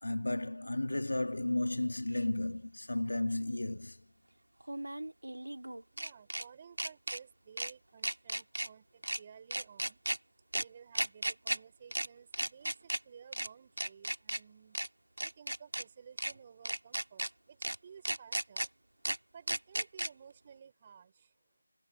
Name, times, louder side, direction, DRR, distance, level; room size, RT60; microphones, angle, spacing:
voice 1, 0.0-4.0, left 2 dB, 70° left, 2.7 m, -33 dB
sound 1, 2.1-2.2 4.6-6.4 6.8-7.2 7.6-7.7 8.0-8.7 9.0-9.2 9.5-10.2 10.5-10.6 10.9-11.6 11.9-12.1 12.3-13.0 13.3-13.5 13.8-14.4 14.7-14.9 15.2-15.8 16.2-16.3 16.7-17.3 17.6-17.8 18.1-18.7 19.0-19.2 19.5-20.1, right 1 dB, 75° right, 2.5 m, -35 dB
voice 2, 5.8-10.0 10.5-14.8 15.2-18.7 19.3-21.3, right 7 dB, 25° right, 4.3 m, -55 dB
figure-of-eight pair, 165°, 0 cm